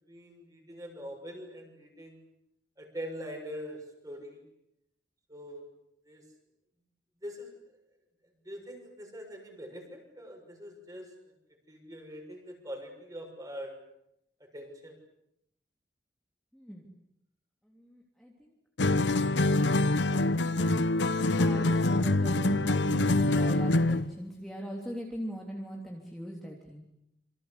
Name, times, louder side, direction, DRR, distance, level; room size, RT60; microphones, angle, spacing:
voice 1, 0.1-2.2 2.8-4.4 5.3-5.6 6.0-6.2 7.2-7.5 8.4-11.1 11.7-13.8 14.5-15.0, equal, 20° right, 3 dB, 6.6 m, -43 dB
voice 2, 16.5-16.9 17.6-18.5 21.4-26.8, equal, ahead, -2 dB, 3.2 m, -40 dB
sound 1, 18.8-24.1, left 2 dB, 85° left, 1.0 m, -25 dB
28.0 x 25.0 x 8.3 m, 0.81 s
head